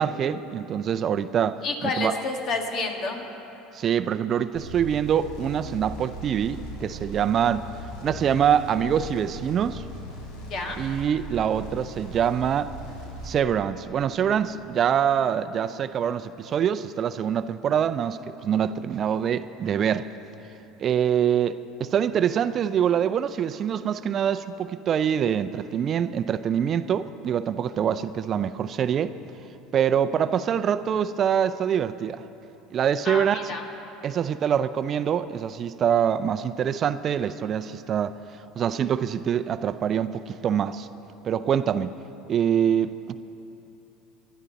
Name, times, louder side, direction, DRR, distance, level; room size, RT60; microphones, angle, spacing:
voice 1, 0.0-1.6 2.0-2.1 3.7-7.7 8.0-9.8 10.8-12.7 13.2-20.1 20.8-29.1 29.7-32.2 32.7-33.4 34.0-38.2 38.6-40.9 41.2-42.0 42.3-43.2, right 8 dB, 45° right, 12 dB, 0.5 m, -25 dB
voice 2, 1.6-3.3 10.5-10.8 33.0-33.6, left 3 dB, 50° left, 2 dB, 2.1 m, -29 dB
sound 1, 4.5-13.4, right 1 dB, 75° left, 2.7 m, -39 dB
23.5 x 11.5 x 4.1 m, 3.0 s
supercardioid pair, 90°, 0 cm